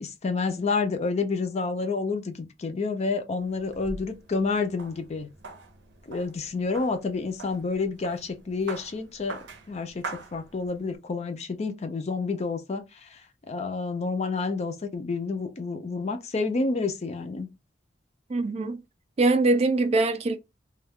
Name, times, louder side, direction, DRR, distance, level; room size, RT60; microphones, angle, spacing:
voice 1, 0.0-5.3 6.1-9.4 9.7-13.2 13.5-17.5, left 4 dB, 40° left, 0.5 m, -29 dB
sound 1, 3.4-11.0, right 3 dB, 85° right, 0.7 m, -44 dB
voice 2, 18.3-18.8 19.2-20.4, right 2 dB, 35° right, 0.3 m, -23 dB
2.3 x 2.2 x 3.4 m
head